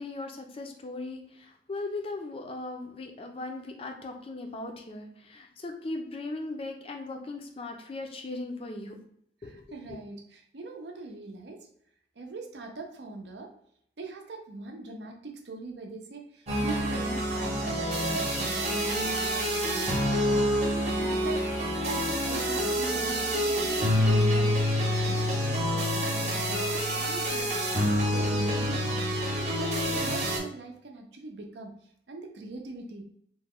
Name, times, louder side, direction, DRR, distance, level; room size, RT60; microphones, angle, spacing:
voice 1, 0.0-9.0 9.4-9.6, left 2 dB, 30° left, 4 dB, 0.4 m, -38 dB
voice 2, 9.4-11.7 12.2-13.5 14.0-28.9 29.3-31.7 32.1-33.0, right 3 dB, 75° right, 2 dB, 0.6 m, -42 dB
sound 1, 16.5-30.4, equal, 40° right, 0.8 m, -27 dB
3.0 x 2.1 x 3.6 m, 0.69 s
head